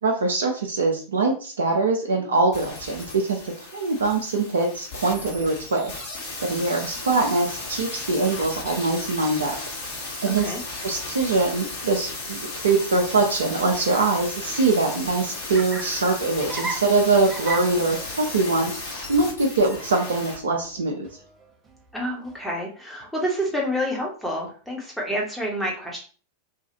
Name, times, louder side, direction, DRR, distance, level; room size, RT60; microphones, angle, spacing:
voice 1, 0.0-5.9 6.4-9.6 10.2-10.5 10.8-21.1, right 3 dB, 70° right, 2 dB, 0.5 m, -23 dB
sound 1, 2.5-20.4 20.7-20.8, left 2 dB, 45° left, 1.2 m, -35 dB
voice 2, 10.2-10.6 21.9-26.0, equal, ahead, -3 dB, 0.9 m, -28 dB
Laughter, 14.9-22.5, right 3 dB, 20° right, 0.5 m, -38 dB
2.8 x 2.3 x 2.7 m, 0.39 s
figure-of-eight pair, 90°, 0 cm